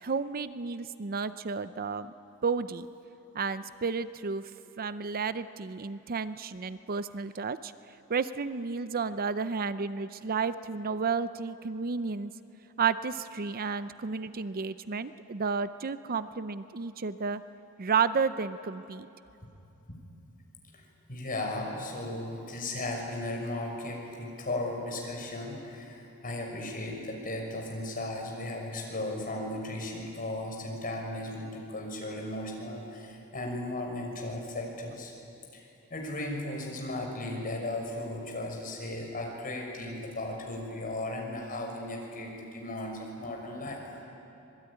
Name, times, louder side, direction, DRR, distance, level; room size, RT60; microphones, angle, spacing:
voice 1, 0.0-2.1 2.4-2.9 3.3-4.5 4.8-7.7 8.1-12.3 12.8-17.4 17.8-19.1, right 5 dB, 45° right, 13 dB, 0.6 m, -32 dB
voice 2, 21.1-35.1 35.5-43.8, left 1 dB, 40° left, 0 dB, 5.9 m, -36 dB
25.5 x 21.5 x 9.9 m, 2.9 s
head